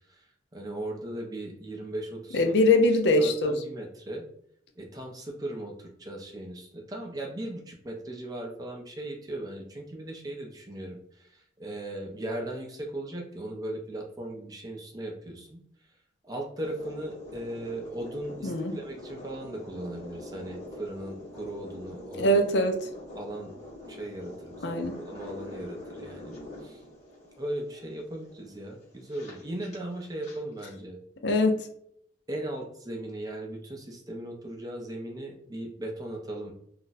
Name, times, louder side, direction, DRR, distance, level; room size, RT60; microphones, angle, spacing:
voice 1, 0.5-2.5 3.2-4.3 4.8-15.6 16.2-22.4 23.1-23.5 23.9-26.4 26.6-26.8 27.4-31.0 32.3-36.5, right 1 dB, 20° right, 1 dB, 0.5 m, -38 dB
voice 2, 2.3-3.5 18.4-18.7 22.2-22.7 24.6-24.9 31.2-31.6, left 1 dB, 75° left, 5 dB, 0.5 m, -22 dB
sound 1, 16.6-30.4, left 1 dB, 40° left, 1.1 m, -45 dB
2.4 x 2.1 x 3.9 m, 0.67 s
head